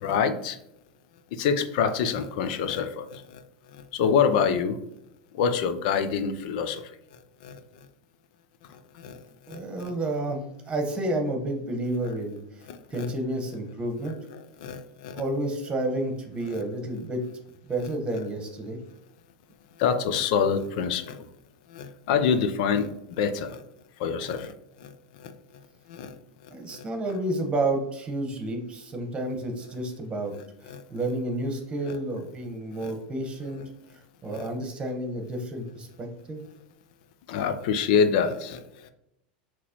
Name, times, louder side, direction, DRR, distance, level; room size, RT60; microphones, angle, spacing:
voice 1, 0.0-0.6 1.3-3.4 3.7-4.8 5.3-6.9 7.4-7.6 8.7-9.2 9.5-9.9 12.7-13.1 14.1-15.2 16.5-16.6 19.8-21.2 21.7-23.6 24.0-24.5 24.8-24.9 25.2-25.3 25.9-26.1 26.7-26.8 30.7-30.8 31.9-32.0 32.8-32.9 34.3-34.5 37.3-38.9, left 6 dB, 65° left, 10 dB, 0.5 m, -27 dB
voice 2, 9.5-12.4 12.9-14.2 15.1-17.2 17.6-18.8 26.5-30.3 30.6-33.6 34.2-36.4, right 1 dB, 20° right, 4 dB, 1.2 m, -30 dB
5.9 x 3.0 x 3.0 m, 0.80 s
supercardioid pair, 115°, 5 cm